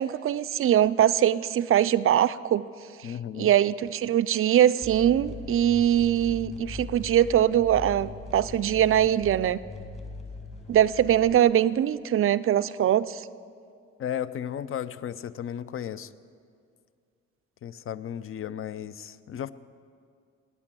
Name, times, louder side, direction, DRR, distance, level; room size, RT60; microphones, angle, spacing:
voice 1, 0.0-2.7 3.0-3.1 3.4-9.6 10.7-13.2, right 11 dB, 45° right, 14 dB, 0.4 m, -22 dB
voice 2, 3.0-3.5 14.0-16.1 17.6-19.5, left 9 dB, 45° left, 15 dB, 0.5 m, -34 dB
sound 1, 4.8-11.4, left 3 dB, 20° left, 1.5 m, -41 dB
18.0 x 6.1 x 7.6 m, 2.3 s
cardioid pair, 90°, 30 cm